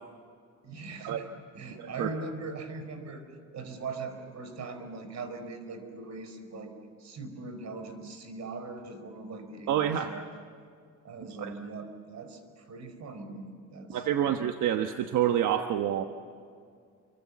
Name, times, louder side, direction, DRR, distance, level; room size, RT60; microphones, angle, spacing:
voice 1, 0.6-1.3 1.5-3.2 3.5-6.7 7.0-10.3 11.0-14.3, right 3 dB, 65° right, 8 dB, 5.0 m, -40 dB
voice 2, 1.7-2.1 9.7-10.1 11.4-11.5 13.9-16.0, right 10 dB, 80° right, 6 dB, 1.3 m, -28 dB
29.5 x 24.5 x 7.4 m, 2.2 s
cardioid pair, 90°, 30 cm